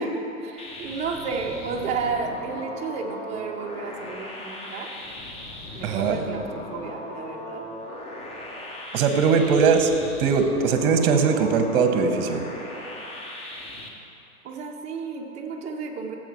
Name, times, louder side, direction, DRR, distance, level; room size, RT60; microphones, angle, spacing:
voice 1, 0.0-4.9 5.7-7.7 14.4-16.1, right 5 dB, 15° right, 2 dB, 0.6 m, -32 dB
sound 1, 0.6-13.9, left 1 dB, 15° left, 0.8 m, -38 dB
voice 2, 5.8-6.2 8.9-9.9 10.2-12.5, right 5 dB, 40° right, 6 dB, 1.0 m, -20 dB
13.5 x 7.6 x 3.2 m, 2.7 s
hypercardioid pair, 120°, 45 cm